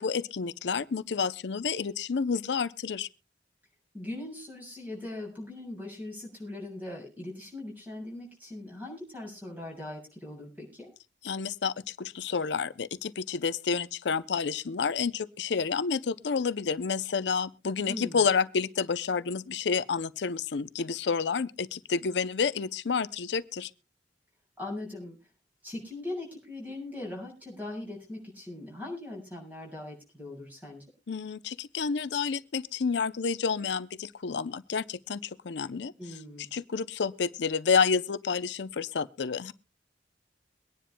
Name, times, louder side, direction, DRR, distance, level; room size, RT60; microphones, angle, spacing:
voice 1, 0.0-3.1 11.2-23.7 31.1-35.9 36.5-39.5, left 5 dB, 80° left, 0.5 m, -29 dB
voice 2, 3.9-10.9 17.9-18.2 24.6-25.2 25.6-30.8 36.0-36.5, left 2 dB, 10° right, 7.0 m, -40 dB
23.5 x 10.0 x 2.2 m
head